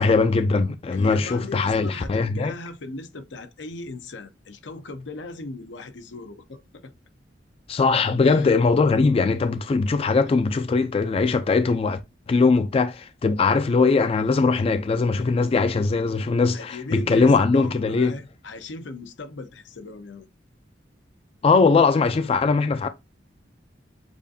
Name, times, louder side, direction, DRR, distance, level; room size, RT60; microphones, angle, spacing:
voice 1, 0.0-2.5 7.7-12.0 12.3-18.1 21.4-22.9, left 4 dB, 30° left, 0.3 m, -20 dB
voice 2, 0.9-6.9 8.2-8.5 16.5-20.3, left 3 dB, 90° left, 0.7 m, -38 dB
7.0 x 2.5 x 2.6 m
head